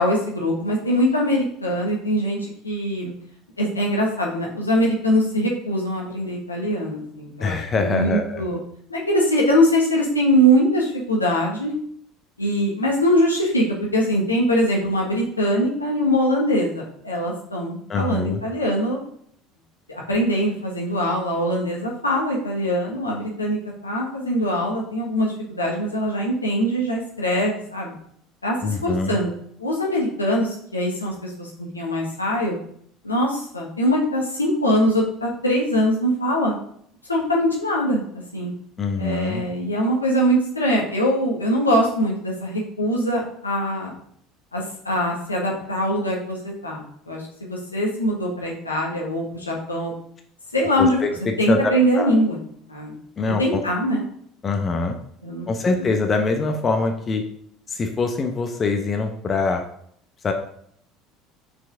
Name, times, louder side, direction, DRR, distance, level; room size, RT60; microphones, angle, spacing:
voice 1, 0.0-2.4 2.6-3.1 3.6-8.6 8.9-11.7 12.4-19.0 19.9-23.6 23.8-27.9 28.4-28.5 28.8-29.3 29.6-32.6 33.0-36.5 37.1-38.0 38.3-38.5 39.0-43.9 44.5-49.9 50.5-51.0 51.4-52.4 52.7-53.0 53.4-54.0 55.2-55.9, equal, 85° left, -3 dB, 1.5 m, -22 dB
voice 2, 7.4-8.4 17.9-18.4 28.6-29.2 38.8-39.4 50.8-52.1 53.2-53.6 54.4-54.9 55.5-57.2 57.7-59.6 60.2-60.3, left 4 dB, 30° left, 4 dB, 0.9 m, -24 dB
6.1 x 4.8 x 3.8 m, 0.66 s
figure-of-eight pair, 65°, 0 cm